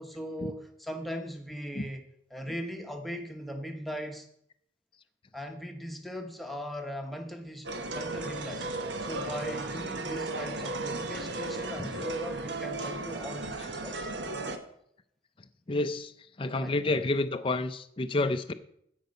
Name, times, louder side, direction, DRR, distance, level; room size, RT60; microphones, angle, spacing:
voice 1, 0.0-2.0 2.3-4.3 5.3-8.6 9.0-14.0 16.6-16.8, equal, ahead, 1.0 m, -39 dB
sound 1, 7.6-14.6, right 2 dB, 70° right, 1.1 m, -35 dB
voice 2, 15.7-16.1 16.4-18.5, left 2 dB, 30° left, 0.4 m, -29 dB
15.0 x 5.3 x 5.3 m
head